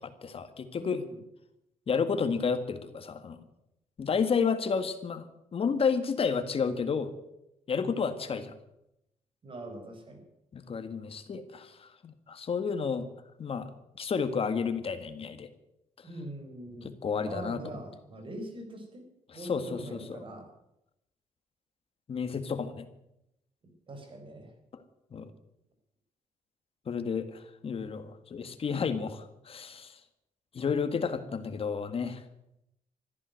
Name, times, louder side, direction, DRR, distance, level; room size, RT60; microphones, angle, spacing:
voice 1, 0.0-1.0 1.9-3.5 4.0-7.1 7.7-8.5 10.5-13.1 13.4-13.7 14.0-15.5 17.0-17.6 19.3-20.0 22.1-22.9 25.1-25.3 26.9-30.0 30.5-32.2, left 5 dB, 45° left, 10 dB, 1.7 m, -31 dB
voice 2, 0.8-1.2 7.7-8.2 9.4-10.2 16.0-16.9 17.2-19.1 19.3-20.5 23.9-24.5, right 1 dB, 40° right, 5 dB, 4.4 m, -42 dB
14.0 x 11.0 x 9.3 m, 0.84 s
cardioid pair, 110°, 14 cm